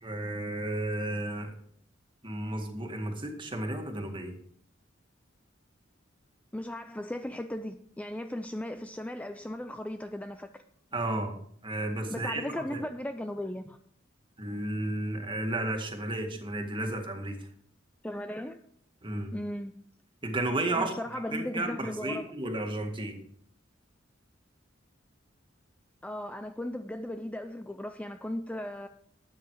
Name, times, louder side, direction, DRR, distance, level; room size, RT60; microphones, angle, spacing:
voice 1, 0.0-1.5 2.2-4.4 10.9-12.4 12.7-12.8 14.4-17.4 19.0-19.3 20.2-20.9 21.3-23.2, right 1 dB, 25° right, 2.0 m, -33 dB
voice 2, 6.5-10.5 12.1-13.8 18.0-18.6 19.3-19.7 20.7-22.3 26.0-28.9, left 1 dB, 5° left, 0.4 m, -37 dB
13.0 x 9.1 x 4.7 m
head